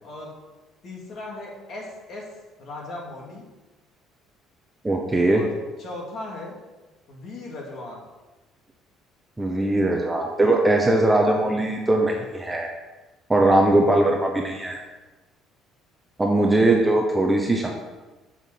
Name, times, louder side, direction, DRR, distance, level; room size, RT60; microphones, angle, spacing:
voice 1, 0.0-0.3 0.8-2.3 2.6-3.4 5.3-5.5 5.8-6.5 7.1-8.0 16.9-17.0, left 2 dB, 40° left, -2 dB, 2.6 m, -37 dB
voice 2, 4.8-5.4 9.4-12.7 13.3-14.8 16.2-17.7, right 2 dB, 10° right, 1 dB, 0.8 m, -20 dB
7.1 x 6.2 x 7.6 m, 1.2 s
cardioid pair, 165°, 0 cm